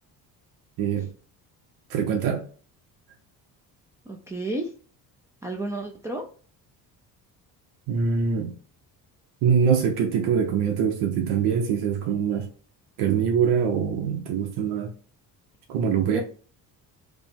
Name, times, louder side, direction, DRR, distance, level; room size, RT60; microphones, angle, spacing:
voice 1, 0.8-1.1 1.9-2.4 7.9-8.5 9.4-12.5 13.0-14.9 15.7-16.2, right 7 dB, 75° right, 0.7 m, -23 dB
voice 2, 4.1-4.7 5.4-6.2 16.1-16.2, right 1 dB, 10° right, 0.3 m, -31 dB
5.0 x 2.0 x 3.5 m
cardioid pair, 120°, 39 cm